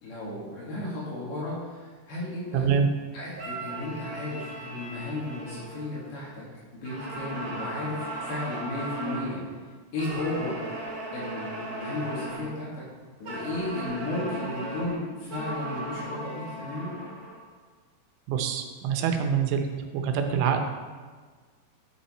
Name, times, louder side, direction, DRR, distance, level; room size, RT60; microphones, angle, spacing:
voice 1, 0.0-2.7 3.1-6.4 6.8-9.4 9.9-10.6 10.8-12.8 13.2-16.9 20.3-20.4, left 2 dB, 65° left, -7 dB, 3.8 m, -34 dB
voice 2, 2.5-2.9 18.3-19.6 19.9-20.6, right 7 dB, 85° right, 5 dB, 3.1 m, -25 dB
grazer call, 3.3-6.4 6.8-9.4 10.0-12.6 13.2-17.5, right 1 dB, 55° right, 1.6 m, -37 dB
10.5 x 5.7 x 4.3 m, 1.5 s
omnidirectional pair, 5.1 m